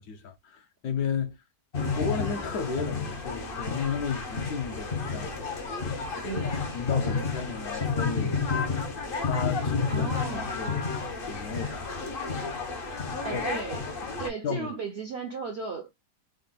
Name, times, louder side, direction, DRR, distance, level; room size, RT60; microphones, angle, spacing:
voice 1, 0.0-1.4 2.0-5.4 6.7-8.5 9.2-10.1 10.3-10.9 11.2-12.1 13.3-13.5 14.4-14.7, left 6 dB, 70° left, 1.0 m, -33 dB
sound 1, 1.7-14.3, left 4 dB, 55° left, 0.6 m, -31 dB
voice 2, 6.2-6.6 9.9-10.6 13.2-13.8 14.2-15.9, right 5 dB, 65° right, 0.6 m, -35 dB
3.7 x 2.1 x 3.6 m
omnidirectional pair, 1.8 m